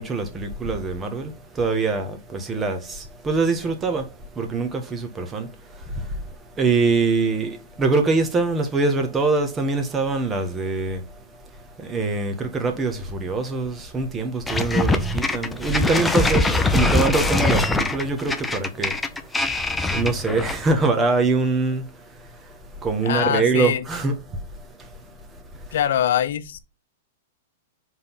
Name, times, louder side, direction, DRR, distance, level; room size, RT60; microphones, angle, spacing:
voice 1, 0.0-6.1 6.6-11.2 11.8-19.0 19.3-19.5 19.9-24.4 24.8-24.9, right 3 dB, 15° right, 1.4 m, -24 dB
sound 1, 14.5-20.7, left 2 dB, 5° left, 0.6 m, -22 dB
voice 2, 23.0-23.8 25.7-26.6, left 10 dB, 70° left, 0.8 m, -23 dB
5.2 x 3.9 x 5.8 m
hypercardioid pair, 145°, 0 cm